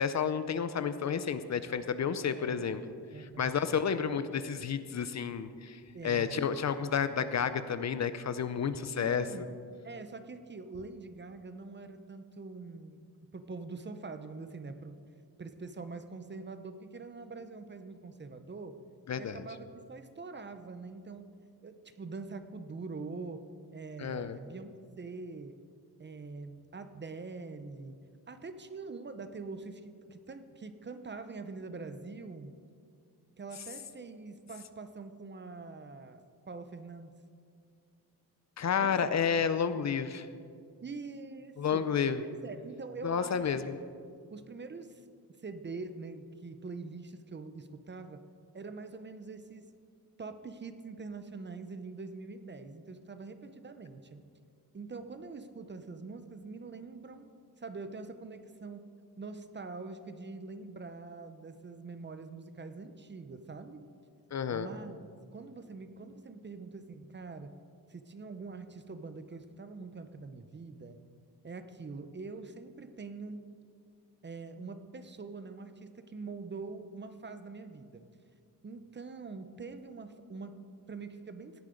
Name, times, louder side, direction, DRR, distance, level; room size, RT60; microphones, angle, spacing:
voice 1, 0.0-2.8 3.2-9.3 19.1-19.4 24.0-24.4 38.6-40.3 41.6-42.2 43.0-43.8 64.3-64.7, left 7 dB, 45° left, 12 dB, 0.6 m, -31 dB
voice 2, 2.3-2.7 3.1-3.6 5.9-6.5 9.0-9.5 9.8-13.0 13.3-15.0 15.4-18.8 19.2-21.3 21.6-23.4 23.7-25.6 26.0-28.0 28.3-32.5 33.4-37.1 38.8-39.2 40.8-41.9 42.2-43.5 44.3-45.0 45.4-48.2 48.5-49.7 50.2-54.2 54.7-57.3 57.6-58.9 59.2-63.8 64.5-65.1 65.3-67.5 67.9-71.0 71.4-73.4 74.2-78.1 78.6-81.6, right 4 dB, 30° right, 10 dB, 0.7 m, -44 dB
17.0 x 9.8 x 5.1 m, 2.2 s
wide cardioid pair, 140°, 38 cm